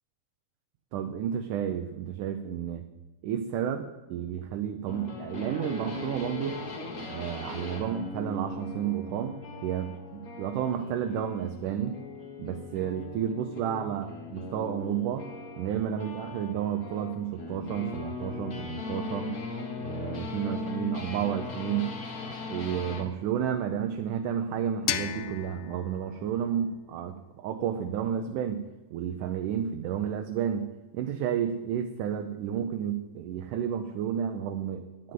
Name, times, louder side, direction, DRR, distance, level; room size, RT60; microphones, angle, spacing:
voice 1, 0.9-2.8 3.2-6.6 7.0-9.3 9.6-12.0 12.4-15.3 15.6-19.4 19.8-21.9 22.3-28.6 28.9-30.7 30.9-35.1, right 9 dB, 75° right, 6 dB, 2.2 m, -31 dB
sound 1, 4.9-23.1, left 3 dB, 40° left, 1.3 m, -39 dB
sound 2, 24.9-27.7, left 12 dB, 75° left, 2.0 m, -36 dB
11.0 x 7.6 x 9.5 m, 1.1 s
omnidirectional pair, 3.9 m